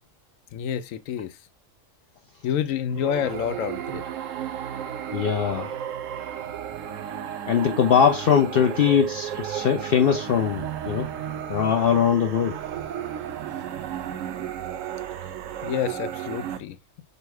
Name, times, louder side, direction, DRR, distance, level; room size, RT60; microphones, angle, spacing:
voice 1, 0.5-1.4 2.4-4.0 15.6-16.8, left 9 dB, 85° left, 1.0 m, -28 dB
sound 1, 2.9-16.6, right 10 dB, 80° right, 1.0 m, -33 dB
voice 2, 5.1-5.7 7.5-11.1 11.5-12.6, left 8 dB, 60° left, 0.6 m, -21 dB
5.3 x 2.1 x 4.7 m
omnidirectional pair, 1.3 m